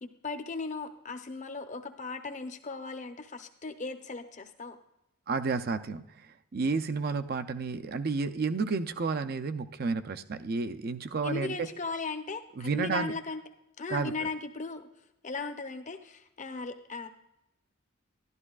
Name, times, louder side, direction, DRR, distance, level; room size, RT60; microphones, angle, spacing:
voice 1, 0.0-4.8 11.2-13.4 13.8-14.9 15.2-17.1, left 3 dB, 35° left, 7 dB, 0.7 m, -37 dB
voice 2, 5.3-6.3 6.5-11.7 12.6-13.1 13.9-14.3, right 4 dB, 45° right, 10 dB, 0.4 m, -31 dB
12.0 x 12.0 x 2.4 m, 0.87 s
head